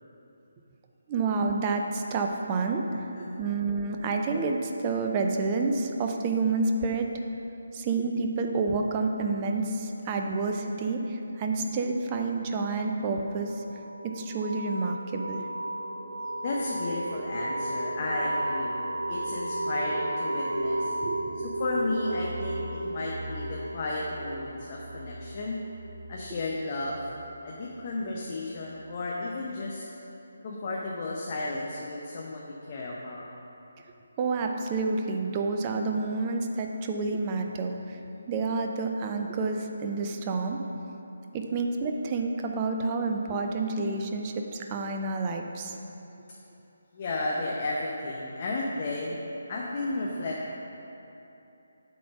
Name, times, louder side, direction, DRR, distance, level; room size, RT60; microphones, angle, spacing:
voice 1, 1.1-3.1 3.4-7.1 7.7-13.6 14.0-15.5 21.0-21.5 34.2-38.0 38.3-40.6 41.3-45.8, right 3 dB, 25° right, 3 dB, 0.6 m, -29 dB
sound 1, 13.2-27.7, right 1 dB, 75° right, 0.9 m, -34 dB
voice 2, 16.4-18.7 19.1-21.0 21.6-25.6 26.1-27.0 27.4-29.8 30.4-33.3 46.9-49.2 49.5-50.5, left 2 dB, 35° left, -3 dB, 0.8 m, -33 dB
8.4 x 4.1 x 5.9 m, 2.9 s
figure-of-eight pair, 150°, 0 cm